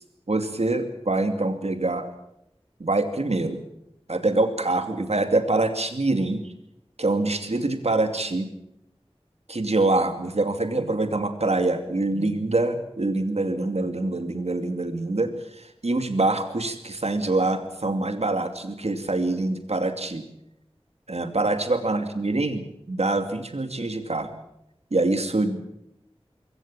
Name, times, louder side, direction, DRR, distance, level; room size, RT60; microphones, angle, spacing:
voice 1, 0.3-2.1 2.8-3.6 4.1-6.4 7.0-8.5 9.5-20.2 21.1-24.3 24.9-25.7, right 2 dB, 80° right, 7 dB, 2.6 m, -25 dB
22.5 x 17.5 x 8.7 m, 0.81 s
wide cardioid pair, 45°, 11 cm